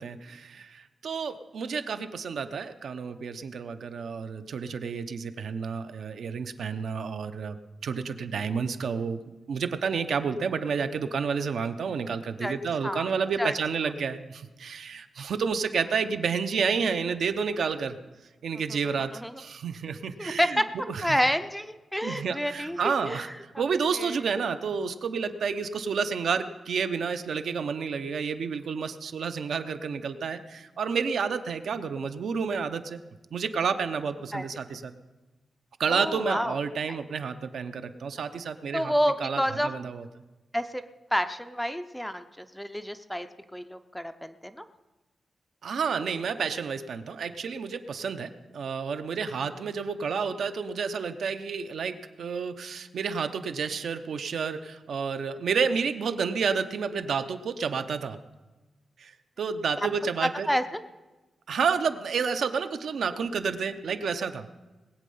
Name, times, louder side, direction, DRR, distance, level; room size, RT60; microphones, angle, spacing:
voice 1, 0.0-7.6 7.8-9.2 9.5-18.0 18.4-21.2 22.0-23.3 23.6-33.0 33.3-34.9 35.8-38.9 39.2-40.1 45.6-58.2 59.0-59.1 59.4-60.5 61.5-64.5, right 6 dB, 65° right, 9 dB, 0.7 m, -30 dB
voice 2, 20.2-20.7 21.0-23.2 23.9-24.1 34.3-34.4 35.9-36.6 36.9-37.0 38.7-39.7 40.5-40.8 41.1-43.3 43.5-44.6 60.5-60.8, equal, ahead, 10 dB, 0.4 m, -29 dB
20.0 x 8.5 x 5.5 m, 1.2 s
wide cardioid pair, 180°, 0 cm